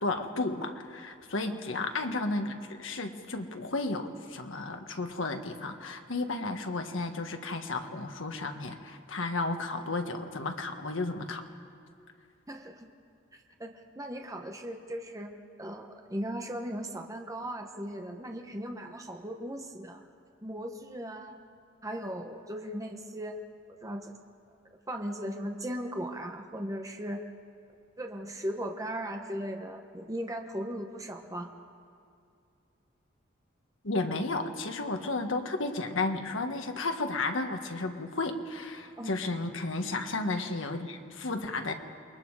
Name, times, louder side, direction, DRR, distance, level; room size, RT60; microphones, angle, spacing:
voice 1, 0.0-11.4 33.8-41.7, left 2 dB, 75° left, 5 dB, 1.6 m, -33 dB
voice 2, 12.5-12.9 13.3-20.0 20.4-21.4 21.8-23.4 23.8-24.1 24.9-27.2 28.0-31.5 39.0-39.2, equal, 15° right, 3 dB, 1.1 m, -38 dB
28.5 x 21.5 x 4.9 m, 2.4 s
head